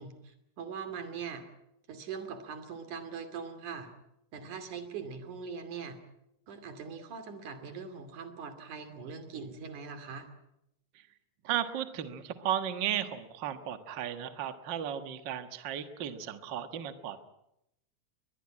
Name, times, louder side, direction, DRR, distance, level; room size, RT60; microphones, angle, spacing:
voice 1, 0.0-1.5 1.9-3.9 4.3-6.0 6.5-10.3, right 6 dB, 90° right, 8 dB, 4.1 m, -41 dB
voice 2, 11.4-17.2, right 10 dB, 45° right, 9 dB, 1.7 m, -35 dB
22.0 x 21.5 x 8.7 m, 0.82 s
omnidirectional pair, 3.4 m